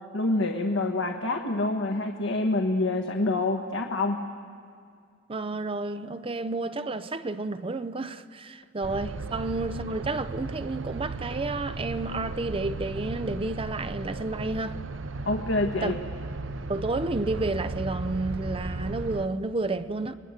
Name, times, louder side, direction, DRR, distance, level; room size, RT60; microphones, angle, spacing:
voice 1, 0.1-4.2 15.3-16.0, left 2 dB, 75° left, 1.4 m, -26 dB
voice 2, 5.3-14.8 15.8-15.9 16.7-20.1, right 2 dB, 30° right, 0.6 m, -31 dB
sound 1, 8.8-19.3, right 2 dB, 90° right, 0.8 m, -35 dB
30.0 x 19.5 x 6.5 m
head